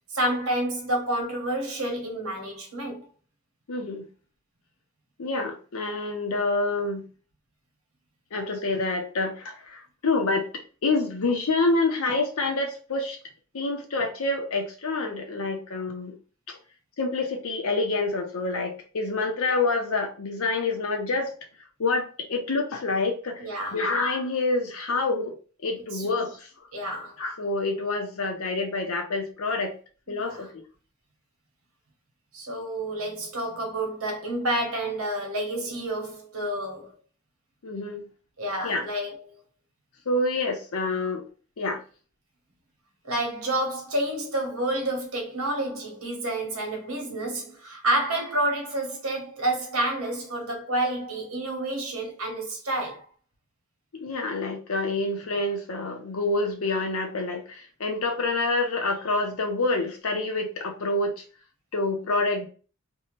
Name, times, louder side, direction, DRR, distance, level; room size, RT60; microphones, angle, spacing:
voice 1, 0.1-3.1 23.4-23.8 25.9-26.1 26.7-27.2 30.1-30.5 32.3-36.9 38.4-39.4 43.0-53.0, right 1 dB, 85° right, 1.1 m, -29 dB
voice 2, 3.7-4.1 5.2-7.0 8.3-10.5 10.8-13.2 13.5-16.1 16.5-16.6 17.0-21.3 21.8-23.4 23.7-25.4 25.6-26.5 27.2-29.7 30.1-30.6 37.6-38.1 38.6-38.8 40.1-41.2 41.6-41.8 53.9-61.2 61.7-62.5, left 3 dB, 80° left, 0.7 m, -27 dB
2.7 x 2.2 x 3.1 m
head